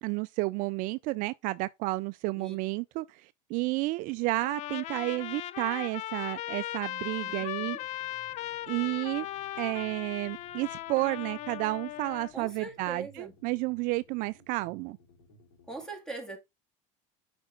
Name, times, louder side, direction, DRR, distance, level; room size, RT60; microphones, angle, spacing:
voice 1, 0.0-3.2 3.5-7.8 8.7-9.3 9.6-15.0, right 21 dB, 55° right, 0.4 m, -31 dB
Trumpet, 4.4-12.3, left 14 dB, 45° left, 0.4 m, -38 dB
voice 2, 7.4-7.7 12.3-13.3 15.7-16.4, right 3 dB, 5° left, 2.4 m, -41 dB
sound 1, 7.8-15.8, left 2 dB, 85° left, 3.7 m, -60 dB
7.8 x 5.2 x 3.8 m
supercardioid pair, 120°, 17 cm